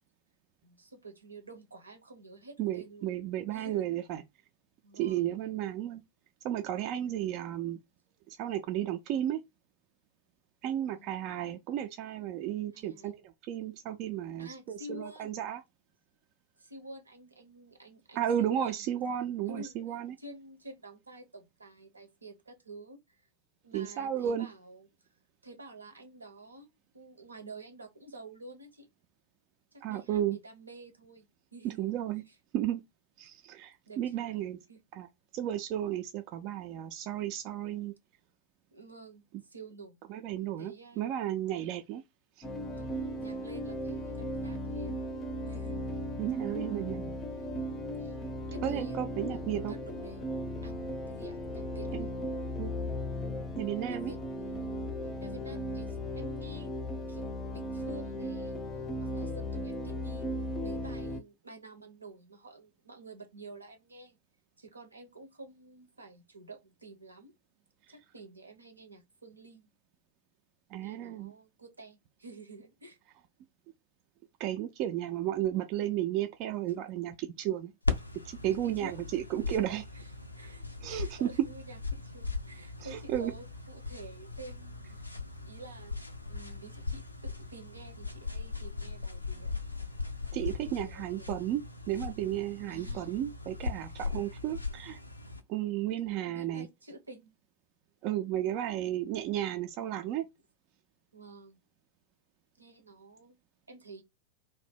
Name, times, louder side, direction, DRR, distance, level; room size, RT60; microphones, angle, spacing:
voice 1, 0.6-3.1 3.5-3.9 4.8-5.2 10.9-11.4 12.7-13.1 14.4-15.4 16.6-18.9 19.5-19.8 20.2-23.3 23.6-25.1 25.4-28.9 29.7-31.9 32.3-32.4 33.9-34.8 38.7-40.1 40.6-41.1 42.7-45.0 45.5-45.8 48.0-48.2 48.5-49.2 49.5-52.1 53.9-54.7 55.2-56.7 57.1-58.6 59.0-64.2 64.6-67.3 67.9-69.7 70.8-73.0 78.5-79.0 79.5-79.6 79.9-85.0 85.4-86.0 86.3-89.6 90.6-91.4 92.7-93.2 96.1-97.3 101.1-101.6 102.5-103.4 103.7-104.0, right 2 dB, 80° right, 0.6 m, -50 dB
voice 2, 2.6-4.2 4.9-6.0 6.4-7.8 8.3-9.4 10.6-15.6 18.1-20.2 23.7-24.5 29.8-30.4 31.6-32.2 32.5-32.8 33.2-34.6 34.9-35.1 35.3-37.9 40.1-42.0 42.4-42.5 46.2-47.1 48.6-49.7 51.9-52.1 52.6-52.7 53.6-54.1 70.7-71.3 74.4-77.7 78.2-79.8 80.8-81.3 82.8-83.3 90.3-95.0 95.5-96.7 98.0-100.2, right 11 dB, 40° right, 0.3 m, -33 dB
sound 1, 42.4-61.2, equal, 25° left, 0.5 m, -36 dB
sound 2, 77.8-95.4, left 3 dB, 85° left, 0.4 m, -39 dB
2.6 x 2.0 x 3.4 m
figure-of-eight pair, 90°, 0 cm